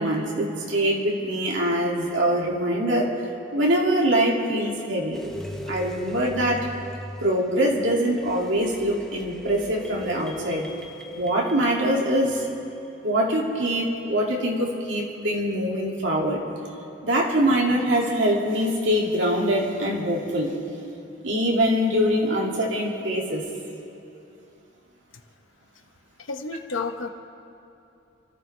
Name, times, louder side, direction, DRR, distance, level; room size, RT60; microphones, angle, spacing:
voice 1, 0.0-3.1 3.5-5.2 5.7-6.7 7.2-10.7 11.1-12.4 13.0-16.4 17.0-20.6 21.2-23.4, equal, 70° right, -2 dB, 2.5 m, -23 dB
sound 1, 5.1-13.2, left 1 dB, 5° left, 0.7 m, -40 dB
voice 2, 26.2-27.1, left 4 dB, 85° left, 6 dB, 1.0 m, -31 dB
28.0 x 14.0 x 3.4 m, 2.7 s
head